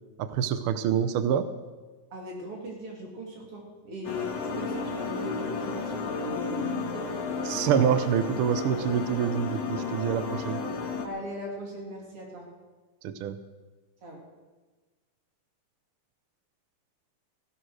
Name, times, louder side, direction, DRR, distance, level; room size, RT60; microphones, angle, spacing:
voice 1, 0.2-1.5 7.5-10.6 13.0-13.4, right 8 dB, 80° right, 11 dB, 1.2 m, -26 dB
voice 2, 2.1-7.6 11.0-12.5 14.0-14.2, equal, 50° right, -1 dB, 3.8 m, -39 dB
sound 1, 4.0-11.1, left 4 dB, 60° left, 2.4 m, -32 dB
16.0 x 11.0 x 6.4 m, 1.3 s
omnidirectional pair, 3.4 m